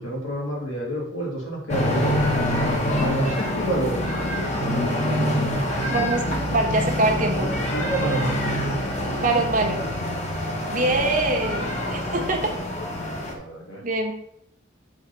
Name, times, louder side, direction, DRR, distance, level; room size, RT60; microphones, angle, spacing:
voice 1, 0.0-2.1 3.0-4.4 7.4-8.4 13.0-13.8, right 1 dB, 85° left, -3 dB, 2.5 m, -29 dB
sound 1, 1.7-13.3, left 1 dB, 35° left, 1.0 m, -25 dB
voice 2, 5.9-7.5 9.2-9.9 10.7-12.5 13.8-14.1, right 2 dB, 40° right, 3 dB, 1.1 m, -24 dB
7.3 x 3.6 x 5.6 m, 0.73 s
head